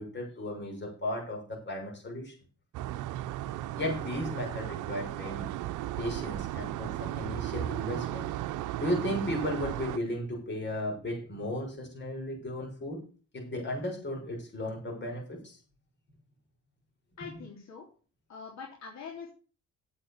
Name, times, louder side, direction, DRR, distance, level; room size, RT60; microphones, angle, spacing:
voice 1, 0.0-2.3 3.8-5.6 6.0-8.4 8.8-13.1 13.3-15.6, left 1 dB, 35° left, 1 dB, 6.4 m, -35 dB
sound 1, 2.7-10.0, right 14 dB, 85° right, 0.7 m, -35 dB
voice 2, 17.2-17.9 18.3-19.3, left 5 dB, 60° left, -2 dB, 3.4 m, -43 dB
9.0 x 8.0 x 6.7 m, 0.37 s
cardioid pair, 90°, 30 cm